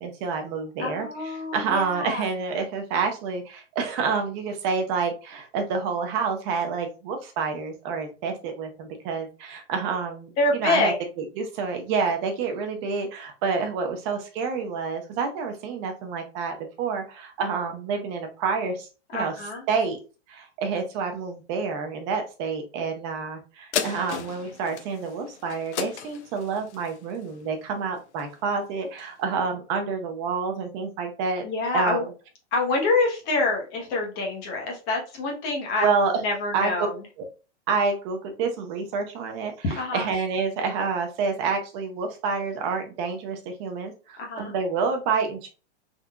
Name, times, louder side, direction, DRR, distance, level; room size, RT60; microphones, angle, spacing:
voice 1, 0.0-1.1 1.5-19.3 19.7-20.0 20.3-31.4 31.7-32.1 35.8-36.1 36.5-36.7 37.7-39.5 39.9-45.5, right 5 dB, 25° right, 4 dB, 0.5 m, -28 dB
voice 2, 0.8-2.2 10.4-10.9 19.1-19.6 31.4-32.1 32.5-35.9 36.1-37.0 39.6-40.1 44.2-44.5, left 3 dB, 25° left, 0 dB, 0.9 m, -26 dB
sound 1, 23.7-28.5 29.0-29.1, left 9 dB, 70° left, 0.5 m, -35 dB
3.7 x 2.6 x 2.2 m, 0.33 s
supercardioid pair, 160°, 35 cm